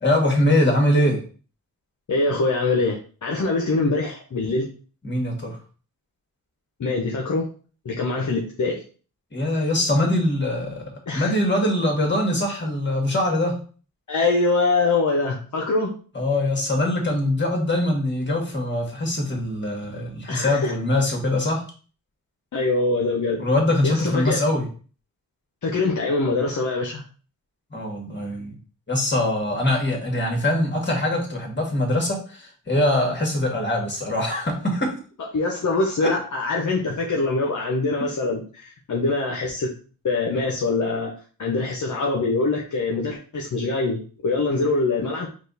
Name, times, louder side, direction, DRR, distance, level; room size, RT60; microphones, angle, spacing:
voice 1, 0.0-1.2 5.0-5.5 9.3-13.6 16.1-21.6 23.4-24.7 27.7-28.5 28.9-34.9 36.0-36.1, left 1 dB, 30° left, 1 dB, 1.7 m, -23 dB
voice 2, 2.1-4.7 6.8-7.5 7.8-8.8 11.1-11.3 14.1-15.9 20.3-20.7 22.5-23.4 23.8-24.4 25.6-27.0 35.3-39.7 40.0-41.1 41.4-45.3, left 3 dB, 55° left, -1 dB, 0.9 m, -23 dB
4.6 x 2.4 x 4.0 m, 0.39 s
cardioid pair, 60°, 35 cm